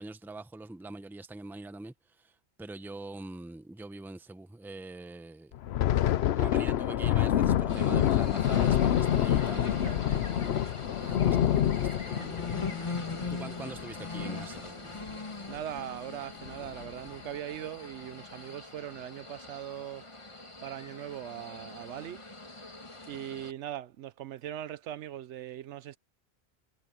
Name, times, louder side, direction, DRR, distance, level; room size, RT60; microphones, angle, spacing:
voice 1, 0.0-1.9 2.2-2.3 2.6-5.5 6.4-10.6 11.0-12.9 13.3-15.0, right 2 dB, ahead, 0.7 m, -44 dB
Thunder, 5.5-14.6 14.9-15.2 15.5-15.8 16.4-16.9, left 11 dB, 70° left, 0.8 m, -27 dB
sound 1, 7.7-23.5, left 3 dB, 25° left, 1.6 m, -41 dB
voice 2, 15.5-20.0 20.6-22.2 23.1-26.0, right 11 dB, 80° right, 0.9 m, -40 dB
omnidirectional pair, 1.2 m